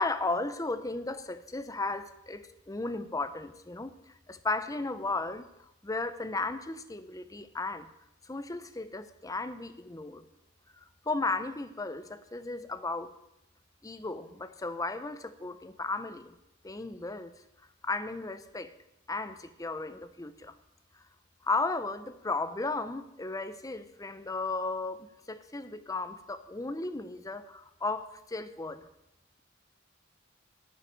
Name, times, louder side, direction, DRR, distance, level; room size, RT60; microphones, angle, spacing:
voice 1, 0.0-3.9 4.3-5.5 5.8-7.9 8.2-10.2 10.8-13.1 13.8-16.3 16.6-17.3 17.8-18.7 19.1-20.5 21.4-28.9, left 3 dB, 15° left, 11 dB, 0.7 m, -35 dB
9.5 x 7.6 x 9.4 m, 0.88 s
head